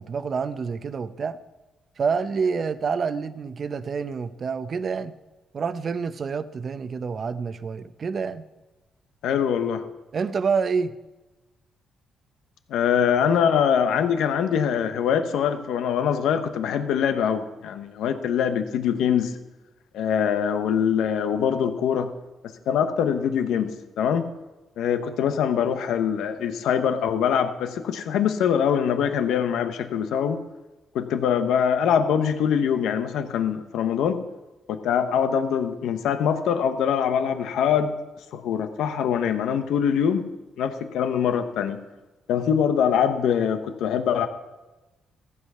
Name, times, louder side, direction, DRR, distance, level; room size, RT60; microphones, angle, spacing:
voice 1, 0.0-1.4 2.0-5.1 5.5-8.5 10.1-11.0, right 5 dB, 45° right, 12 dB, 0.7 m, -27 dB
voice 2, 9.2-9.8 12.7-19.3 19.9-22.1 22.7-24.3 24.8-30.4 30.9-34.2 34.7-37.9 38.3-40.3 40.6-41.8 42.3-44.3, left 8 dB, 80° left, 8 dB, 1.0 m, -23 dB
14.5 x 8.4 x 5.6 m, 1.1 s
cardioid pair, 90°, 0 cm